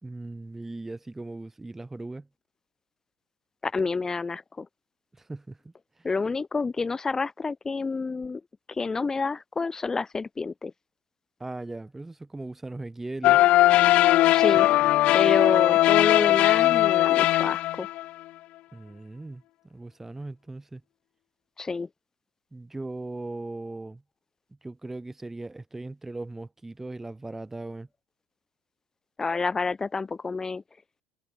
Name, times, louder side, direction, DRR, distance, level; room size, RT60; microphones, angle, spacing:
voice 1, 0.0-2.3 5.1-5.6 11.4-13.4 18.7-19.4 19.7-20.8 22.5-24.0 24.6-27.9, right 2 dB, 15° right, 3.3 m, -38 dB
voice 2, 3.6-4.7 6.0-8.4 8.7-10.7 14.3-14.7 15.1-17.9 21.6-21.9 29.2-30.6, left 4 dB, 25° left, 3.2 m, -28 dB
sound 1, 13.2-18.1, left 16 dB, 55° left, 0.4 m, -19 dB
hypercardioid pair, 70°, 2 cm